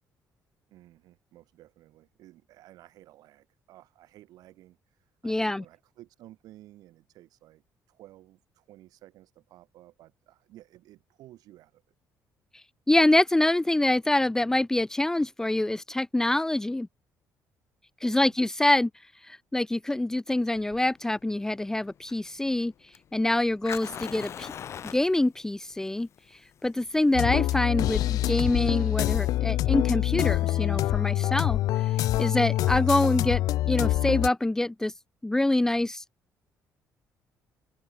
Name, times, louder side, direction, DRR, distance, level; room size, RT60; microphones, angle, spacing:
voice 1, 0.7-11.8 18.0-18.4, right 15 dB, 80° right, 4.5 m, -54 dB
voice 2, 5.2-5.6 12.9-16.9 18.0-18.9 19.3-22.7 23.1-24.5 24.8-26.1 26.6-31.6 32.2-34.9 35.2-36.0, left 1 dB, 10° left, 0.7 m, -25 dB
Fire, 20.6-31.6, left 9 dB, 45° left, 2.4 m, -43 dB
sound 1, 27.1-34.3, left 15 dB, 75° left, 0.4 m, -25 dB
open air
cardioid pair, 145°, 6 cm